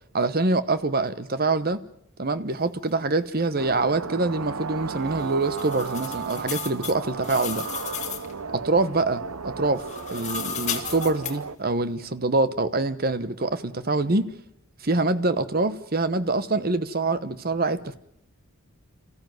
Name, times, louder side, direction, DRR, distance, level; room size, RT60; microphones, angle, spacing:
voice 1, 0.1-1.8 2.2-7.6 8.5-9.8 10.1-14.3 14.8-18.0, right 3 dB, 45° right, 13 dB, 1.0 m, -25 dB
sound 1, 3.6-11.6, right 5 dB, 80° right, 0.8 m, -35 dB
sound 2, 5.0-8.3 9.7-11.3, left 6 dB, 35° left, 2.2 m, -34 dB
27.5 x 15.0 x 9.3 m, 0.78 s
head